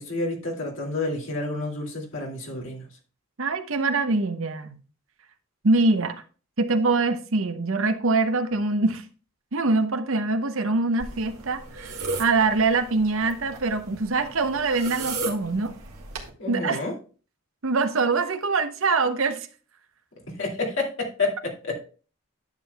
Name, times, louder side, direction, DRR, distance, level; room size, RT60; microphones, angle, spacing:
voice 1, 0.0-2.8 16.4-16.9 20.4-21.8, left 2 dB, 60° left, 2.3 m, -29 dB
voice 2, 3.4-4.8 5.6-6.2 6.6-9.0 9.5-11.9 12.2-15.7 16.5-16.8 17.6-19.5, right 3 dB, 65° right, 0.8 m, -24 dB
sound 1, 11.0-16.3, right 3 dB, 90° right, 1.6 m, -36 dB
10.5 x 7.4 x 2.3 m
head